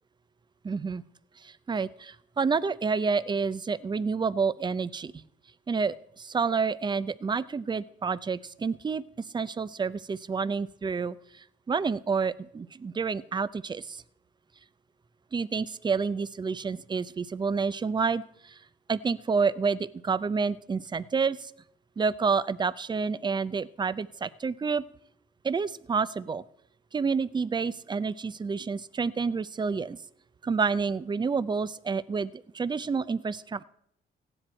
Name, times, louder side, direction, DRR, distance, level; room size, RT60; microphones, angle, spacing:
voice 1, 0.6-1.0 1.4-5.1 5.7-9.0 9.3-11.2 11.7-14.0 15.3-18.6 18.9-21.5 22.0-24.8 25.4-26.4 26.9-30.0 30.4-33.6, right 5 dB, 20° right, 17 dB, 0.5 m, -29 dB
15.5 x 10.0 x 4.4 m, 0.72 s
cardioid pair, 90°, 20 cm